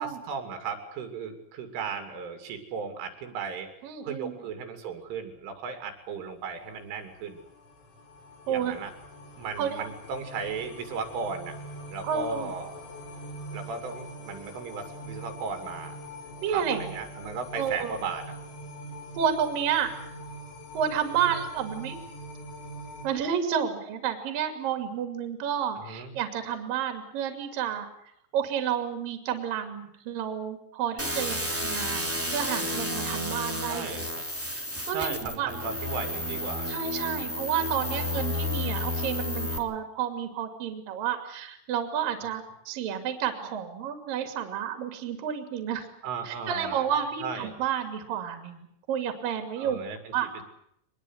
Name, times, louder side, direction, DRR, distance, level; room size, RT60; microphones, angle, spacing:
voice 1, 0.0-3.7 4.0-7.4 8.5-8.9 9.4-11.6 11.9-12.8 13.5-16.0 16.5-18.4 25.8-26.2 31.3-31.4 33.7-34.1 34.9-36.7 46.0-46.9 47.2-47.5 49.6-50.4, right 5 dB, 75° right, 6 dB, 5.4 m, -36 dB
voice 2, 3.8-4.4 8.5-8.7 9.6-9.9 12.0-12.5 16.4-16.8 17.6-17.9 19.2-19.9 20.7-22.0 23.0-27.9 28.3-32.0 32.3-33.9 34.5-35.5 36.7-45.9 46.2-49.8 50.1-50.4, right 8 dB, 50° right, 6 dB, 4.0 m, -30 dB
sound 1, 6.8-23.1, right 1 dB, 85° left, 7.1 m, -43 dB
sound 2, 31.0-39.6, left 1 dB, 5° right, 1.8 m, -31 dB
24.5 x 21.0 x 8.1 m, 0.73 s
omnidirectional pair, 5.8 m